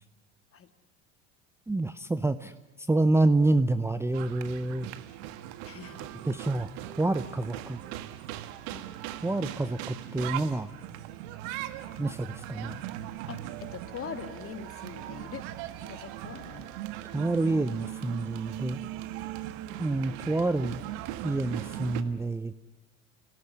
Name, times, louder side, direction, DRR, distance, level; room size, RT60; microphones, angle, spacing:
voice 1, 1.7-4.9 6.2-6.7 7.0-7.8 9.2-10.7 12.0-12.8 17.1-18.8 19.8-20.8 21.2-22.5, right 2 dB, 5° right, 12 dB, 0.8 m, -27 dB
sound 1, 4.1-22.0, right 13 dB, 60° right, 1.7 m, -39 dB
voice 2, 5.6-6.1 8.7-8.9 13.3-15.5 15.9-16.9, left 7 dB, 35° left, 9 dB, 2.3 m, -42 dB
28.0 x 17.5 x 9.7 m, 1.1 s
hypercardioid pair, 70°, 38 cm